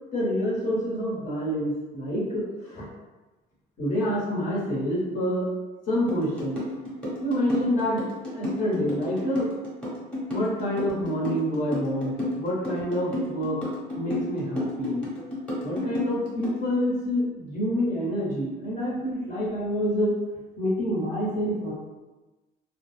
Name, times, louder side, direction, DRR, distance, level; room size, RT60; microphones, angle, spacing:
voice 1, 0.1-2.8 3.8-5.5 5.9-6.6 7.2-8.0 8.3-9.5 10.3-13.6 13.9-15.0 15.6-20.1 20.6-21.7, equal, 50° left, -7 dB, 1.2 m, -27 dB
sound 1, 6.1-16.6, left 1 dB, 5° left, 1.0 m, -31 dB
2.2 x 2.1 x 3.2 m, 1.2 s
cardioid pair, 110°, 17 cm